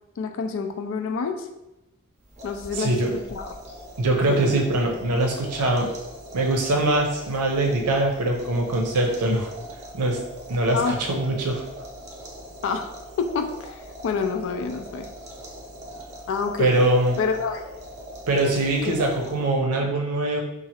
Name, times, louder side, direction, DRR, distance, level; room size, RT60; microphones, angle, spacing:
voice 1, 0.2-1.5 2.4-3.0 3.3-3.6 4.3-4.4 10.7-11.0 12.6-12.9 13.2-15.1 16.3-16.7 17.2-17.6 18.8-19.0, left 5 dB, 60° left, 7 dB, 0.3 m, -27 dB
sound 1, 2.2-19.6, equal, 30° right, 0.6 m, -41 dB
voice 2, 2.8-3.1 4.0-5.9 6.3-9.5 9.9-10.2 10.5-11.6 16.6-17.2 18.3-20.4, right 2 dB, 90° right, 1 dB, 0.6 m, -22 dB
2.8 x 2.4 x 2.8 m, 0.93 s
head